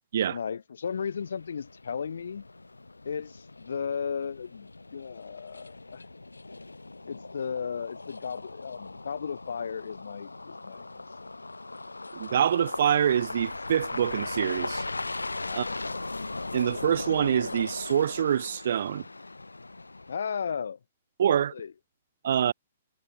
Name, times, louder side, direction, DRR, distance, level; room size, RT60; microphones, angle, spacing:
voice 1, 0.3-2.4 3.0-6.0 7.0-10.9 11.2-11.3 15.3-16.0 20.1-20.8 21.5-21.7, left 6 dB, 65° left, 0.3 m, -35 dB
sound 1, 0.8-20.2, left 2 dB, 85° left, 1.6 m, -39 dB
voice 2, 12.1-14.8 15.6-15.7 16.5-19.0 21.2-21.5 22.2-22.5, right 9 dB, 60° right, 0.4 m, -25 dB
figure-of-eight pair, 120°, 0 cm